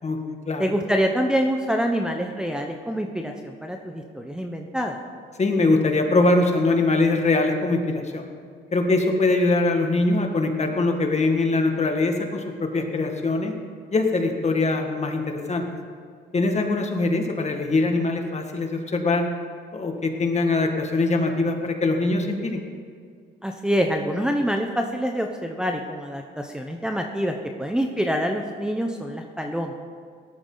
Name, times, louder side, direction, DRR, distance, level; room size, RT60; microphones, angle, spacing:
voice 1, 0.6-5.0 23.4-29.8, equal, 5° right, 2 dB, 0.9 m, -26 dB
voice 2, 5.4-8.3 8.7-13.5 13.9-15.6 16.3-19.3 19.7-22.6, left 2 dB, 35° left, 3 dB, 1.9 m, -22 dB
17.5 x 12.5 x 4.0 m, 2.1 s
cardioid pair, 90°, 20 cm